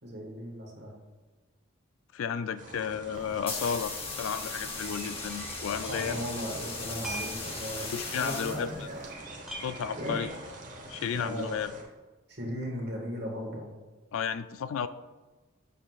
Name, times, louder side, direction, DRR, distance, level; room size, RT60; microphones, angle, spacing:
voice 1, 0.0-1.0 5.9-9.3 9.9-10.2 11.1-11.5 12.3-13.7, equal, 55° right, 0 dB, 1.6 m, -37 dB
voice 2, 2.1-3.9 4.2-6.3 7.9-8.7 9.6-10.3 10.9-11.7 14.1-14.9, left 7 dB, 80° left, 13 dB, 0.3 m, -33 dB
sound 1, 2.6-11.8, right 2 dB, 40° right, 1.0 m, -45 dB
sound 2, 3.1-9.1, left 3 dB, 25° left, 0.9 m, -38 dB
sound 3, 3.7-4.0 4.3-4.4 4.9-6.2 6.5-9.0 9.3-10.4, right 2 dB, ahead, 0.9 m, -43 dB
7.5 x 6.6 x 2.4 m, 1.2 s
head